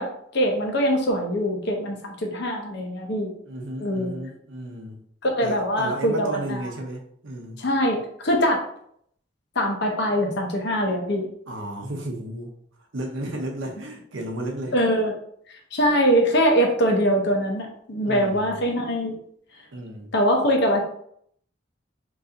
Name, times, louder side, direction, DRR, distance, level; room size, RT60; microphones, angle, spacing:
voice 1, 0.0-3.3 3.8-4.1 5.2-6.7 7.6-8.6 9.6-11.3 14.7-15.1 15.7-19.1 20.1-20.8, equal, 65° left, 0.8 m, -23 dB
voice 2, 3.4-5.0 5.4-7.6 11.5-12.5 12.9-14.8 18.0-18.6 19.7-20.1, right 1 dB, 90° right, 0.7 m, -33 dB
3.0 x 2.6 x 3.6 m
head